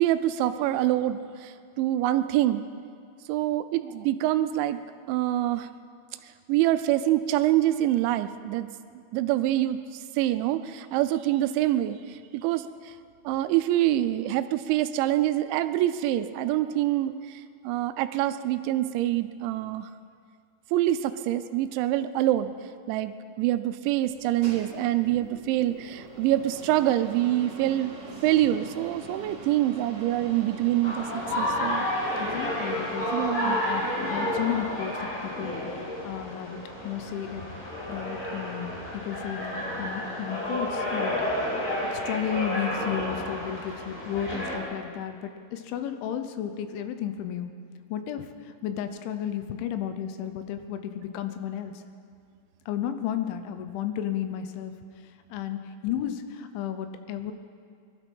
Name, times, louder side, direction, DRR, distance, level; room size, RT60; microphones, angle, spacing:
voice 1, 0.0-2.7 3.3-4.8 5.1-5.7 6.2-8.7 9.1-9.8 10.2-12.9 13.3-19.9 20.7-22.5 22.9-27.9 28.2-31.9 33.1-33.6, right 14 dB, 80° right, 11 dB, 2.9 m, -25 dB
sound 1, 24.0-35.6, right 3 dB, 35° right, 3.0 m, -44 dB
sound 2, 30.8-44.6, left 1 dB, 60° left, 6.8 m, -31 dB
voice 2, 32.2-33.2 33.4-41.6 41.9-47.5 47.9-51.8 52.7-54.8 55.0-57.3, left 10 dB, 85° left, 9 dB, 3.2 m, -33 dB
22.0 x 12.5 x 5.4 m, 2.2 s
omnidirectional pair, 5.4 m